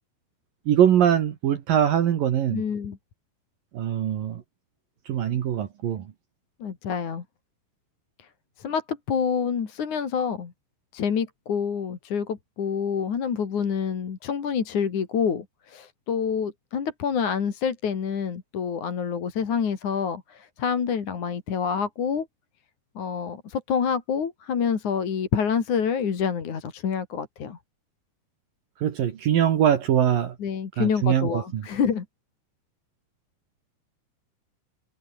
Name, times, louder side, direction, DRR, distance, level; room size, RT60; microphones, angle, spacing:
voice 1, 0.7-2.6 3.7-4.4 5.1-6.0 28.8-30.3 30.8-31.6, right 9 dB, 60° right, 3.1 m, -22 dB
voice 2, 2.5-3.0 6.6-7.2 8.2-8.3 8.6-10.5 10.9-22.3 23.0-27.6 30.4-32.1, left 7 dB, 50° left, 3.9 m, -27 dB
omnidirectional pair, 4.9 m